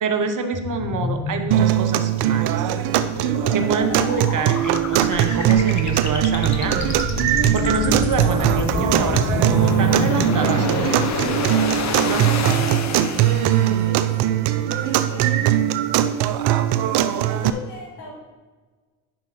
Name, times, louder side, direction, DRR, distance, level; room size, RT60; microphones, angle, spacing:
voice 1, 0.0-2.7 3.5-6.9 7.5-11.4 12.0-12.7, right 5 dB, 45° right, 7 dB, 1.1 m, -26 dB
sound 1, 0.5-13.9, left 5 dB, 40° left, 1.0 m, -28 dB
sound 2, 1.5-17.5, right 12 dB, 65° right, 0.6 m, -20 dB
voice 2, 13.8-14.4 14.8-15.4 17.1-18.1, left 3 dB, 65° left, -1 dB, 2.7 m, -38 dB
10.5 x 5.4 x 4.2 m, 1.4 s
hypercardioid pair, 55°, 42 cm